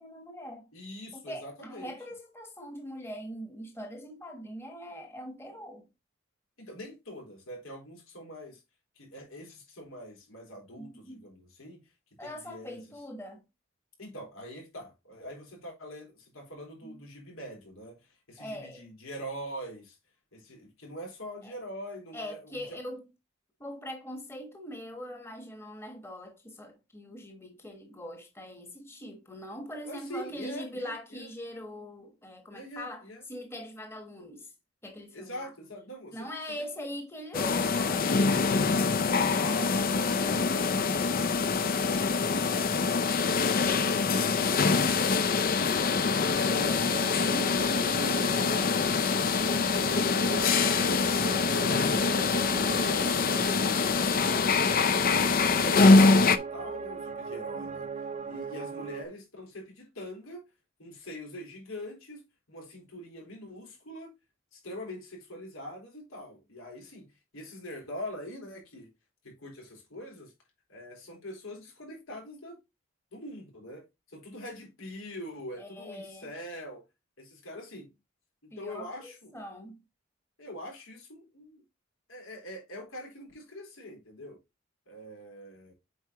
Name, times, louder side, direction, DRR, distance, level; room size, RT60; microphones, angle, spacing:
voice 1, 0.0-0.7 1.1-5.9 10.8-11.2 12.2-13.4 16.8-17.0 18.4-18.9 21.4-21.6 22.1-23.0 23.6-34.5 34.8-35.5 36.1-38.1 75.6-76.3 78.5-79.8, equal, 10° left, 1.1 m, -42 dB
voice 2, 0.7-1.9 6.6-8.6 9.0-11.8 12.2-12.8 14.0-18.0 18.3-20.0 20.3-22.8 29.8-31.3 32.5-33.2 35.1-36.3 38.6-41.2 48.0-48.9 51.5-53.2 53.9-57.9 58.2-60.4 60.8-62.2 62.5-64.1 64.5-67.1 67.3-68.9 69.2-70.3 70.7-72.6 73.1-76.8 77.2-77.9 78.4-79.3 80.4-81.6 82.1-84.4 84.9-85.7, equal, 90° left, 3.9 m, -43 dB
sound 1, 37.3-56.4, left 4 dB, 45° left, 0.5 m, -24 dB
sound 2, 46.3-59.1, right 5 dB, 35° right, 0.6 m, -40 dB
8.0 x 4.6 x 2.9 m
head